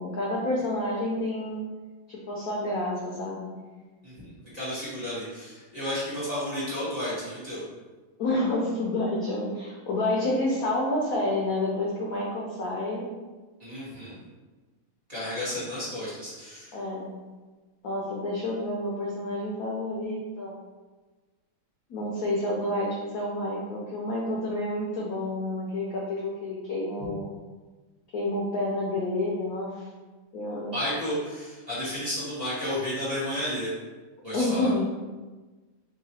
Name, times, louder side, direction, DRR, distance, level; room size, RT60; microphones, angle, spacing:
voice 1, 0.0-1.7 2.1-3.6 8.2-13.1 16.7-17.1 17.8-20.6 21.9-27.3 28.1-29.8 30.3-30.7 34.3-34.9, left 1 dB, 90° left, -3 dB, 0.7 m, -29 dB
voice 2, 4.0-7.6 13.6-14.1 15.1-16.7 30.7-33.7 34.2-34.7, left 1 dB, 25° right, -11 dB, 1.0 m, -32 dB
3.8 x 2.4 x 4.1 m, 1.3 s
omnidirectional pair, 2.3 m